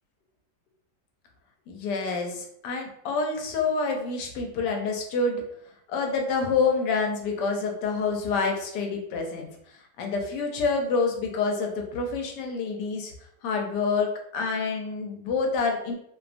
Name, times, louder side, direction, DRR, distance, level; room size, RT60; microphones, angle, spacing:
voice 1, 1.7-5.4 5.9-9.5 10.0-13.1 13.4-15.9, left 4 dB, 80° left, 2 dB, 1.2 m, -27 dB
2.8 x 2.2 x 2.4 m, 0.73 s
omnidirectional pair, 1.8 m